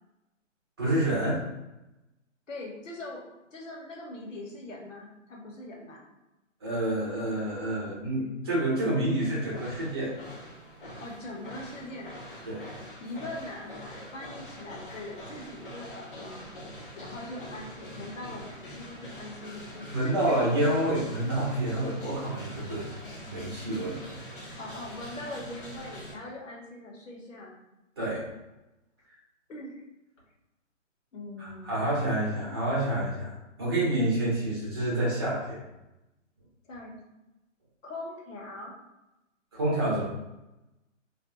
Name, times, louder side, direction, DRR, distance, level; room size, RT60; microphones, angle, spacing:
voice 1, 0.8-1.4 6.6-10.1 12.4-12.7 19.9-22.9 23.2-24.0 28.0-28.3 31.4-33.3 33.6-35.6 39.5-40.0, right 1 dB, 20° right, -8 dB, 0.8 m, -28 dB
voice 2, 2.5-3.2 3.5-6.0 11.0-12.1 13.0-16.4 16.9-20.5 24.6-27.5 29.5-29.8 31.1-31.9 36.6-37.0 37.8-38.7, left 2 dB, 75° left, -1 dB, 1.1 m, -41 dB
sound 1, 9.2-26.1, equal, 45° left, 0.7 m, -44 dB
2.6 x 2.2 x 3.7 m, 0.96 s
hypercardioid pair, 170°, 38 cm